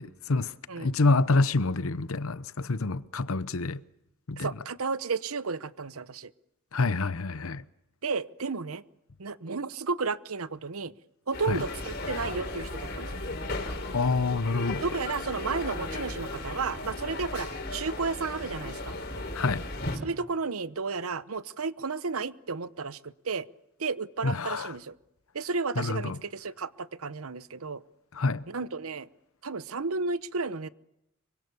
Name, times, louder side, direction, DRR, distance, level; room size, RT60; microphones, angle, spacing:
voice 1, 0.0-3.8 4.3-4.5 6.7-7.6 11.5-11.6 13.9-14.8 19.3-19.7 24.2-24.7 25.8-26.2 28.1-28.5, left 3 dB, 75° left, 0.9 m, -27 dB
voice 2, 4.4-6.3 8.0-8.8 9.2-10.9 11.3-13.1 14.8-19.0 20.0-23.5 23.8-24.9 25.3-27.8 28.5-29.1 29.4-30.7, right 4 dB, 85° right, 0.9 m, -33 dB
sound 1, 11.3-20.0, left 2 dB, 50° left, 4.8 m, -36 dB
25.5 x 24.5 x 6.9 m
head